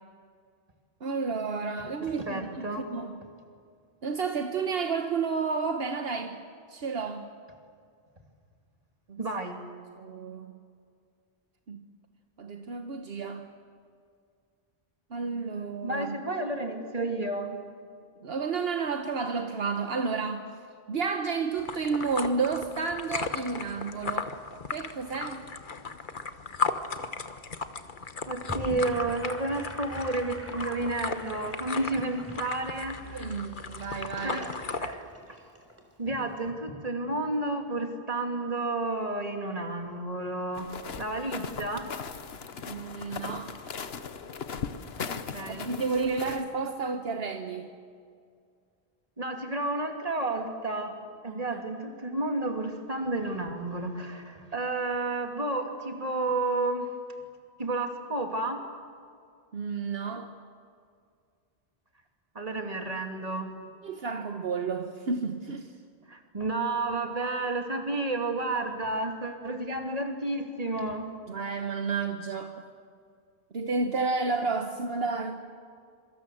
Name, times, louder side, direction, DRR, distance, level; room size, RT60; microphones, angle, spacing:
voice 1, 1.0-3.2 4.0-6.4 6.7-7.3 9.1-9.2 10.0-10.5 11.7-11.8 12.4-13.5 15.1-16.2 18.2-20.5 20.9-24.3 24.7-25.4 33.1-34.5 42.6-43.6 45.4-47.7 51.3-51.6 59.5-60.3 63.8-65.7 71.3-72.6 73.5-75.4, right 4 dB, 70° right, 6 dB, 1.3 m, -31 dB
voice 2, 2.0-2.9 9.2-9.6 15.8-17.5 28.3-33.4 34.2-34.5 34.8-35.4 36.0-41.9 45.3-45.6 49.2-50.9 51.2-56.9 57.6-58.6 62.3-63.5 66.1-71.1, right 2 dB, 35° right, 4 dB, 2.7 m, -31 dB
sound 1, 21.6-34.9, left 4 dB, 55° left, 1.3 m, -36 dB
Gurgling / Sink (filling or washing), 28.3-35.8, equal, 15° right, 3.3 m, -43 dB
sound 2, 40.5-46.4, left 6 dB, 80° left, 1.3 m, -38 dB
26.0 x 24.5 x 7.7 m, 2.2 s
omnidirectional pair, 1.0 m